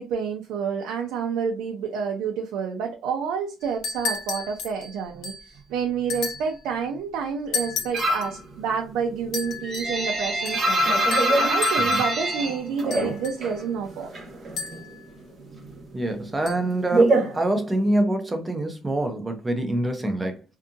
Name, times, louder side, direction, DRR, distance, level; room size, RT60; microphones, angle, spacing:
voice 1, 0.0-14.1, right 6 dB, 85° right, 0.5 m, -29 dB
sound 1, 3.6-5.5 6.1-6.6 7.5-8.3 9.3-10.0 10.4-10.8 11.1-12.1 12.9-13.6 14.6-15.0 16.5-16.6, left 4 dB, 65° left, 0.8 m, -33 dB
sound 2, 7.9-8.4 8.7-13.6 13.9-14.9 15.2-18.0, right 1 dB, 35° right, 0.9 m, -23 dB
voice 2, 15.9-20.4, right 1 dB, 10° right, 0.5 m, -25 dB
2.7 x 2.4 x 2.5 m
cardioid pair, 170°, 0 cm